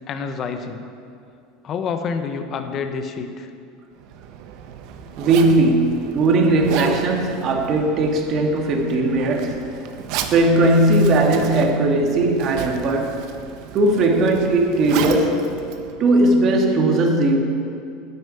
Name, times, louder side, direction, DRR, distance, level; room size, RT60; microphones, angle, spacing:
voice 1, 0.1-0.9 1.6-3.5, left 5 dB, 40° left, 7 dB, 1.2 m, -28 dB
Zipper (clothing), 4.0-16.6, right 8 dB, 65° right, 1.1 m, -34 dB
voice 2, 5.2-9.6 10.3-13.2 13.7-15.4 16.0-17.4, right 2 dB, 45° right, 2 dB, 2.3 m, -18 dB
10.5 x 9.3 x 8.5 m, 2.4 s
hypercardioid pair, 100°, 0 cm